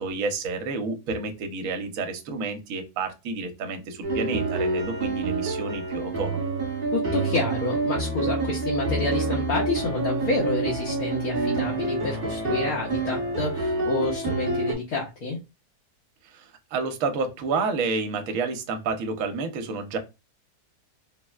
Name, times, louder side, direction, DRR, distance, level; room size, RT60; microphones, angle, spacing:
voice 1, 0.0-6.5 16.2-20.0, right 4 dB, 65° right, 1.0 m, -30 dB
sound 1, 4.0-14.8, right 3 dB, 40° right, 1.2 m, -27 dB
voice 2, 6.9-15.4, left 2 dB, 70° left, 1.2 m, -28 dB
4.2 x 2.1 x 2.3 m
omnidirectional pair, 1.7 m